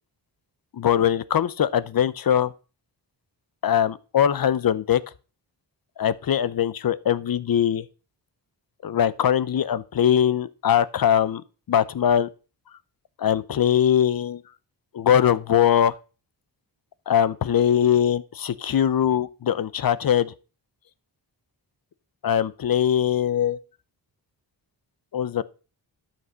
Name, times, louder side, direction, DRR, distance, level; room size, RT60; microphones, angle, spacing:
voice 1, 0.7-2.5 3.6-5.0 6.0-7.9 8.8-11.4 11.7-12.3 13.2-14.4 14.9-15.9 17.1-20.3 22.2-23.6 25.1-25.4, left 9 dB, 50° left, 0.6 m, -21 dB
12.5 x 6.0 x 5.5 m
wide cardioid pair, 110°, 44 cm